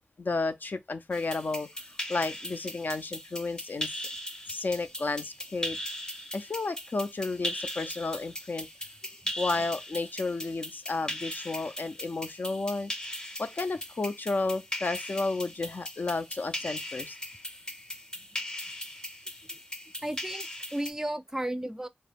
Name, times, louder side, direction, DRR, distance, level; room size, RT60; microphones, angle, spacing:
voice 1, 0.2-1.7 2.1-4.0 4.5-5.8 6.3-8.7 9.4-12.9 13.4-17.2, left 3 dB, 65° left, 0.4 m, -32 dB
sound 1, 1.1-20.9, left 1 dB, 25° left, 0.6 m, -39 dB
voice 2, 20.0-21.9, right 1 dB, 15° right, 0.4 m, -34 dB
2.2 x 2.0 x 3.3 m
cardioid pair, 40°, 3 cm